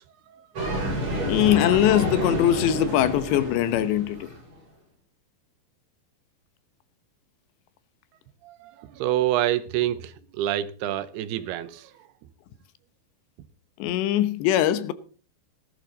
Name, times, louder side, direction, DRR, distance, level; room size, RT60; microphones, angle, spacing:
sound 1, 0.6-4.5, equal, 30° right, 5.3 m, -29 dB
voice 1, 1.3-4.3 13.8-14.9, left 12 dB, 85° left, 3.2 m, -21 dB
voice 2, 8.4-11.9, right 13 dB, 80° right, 2.7 m, -27 dB
18.0 x 11.5 x 4.0 m
omnidirectional pair, 4.9 m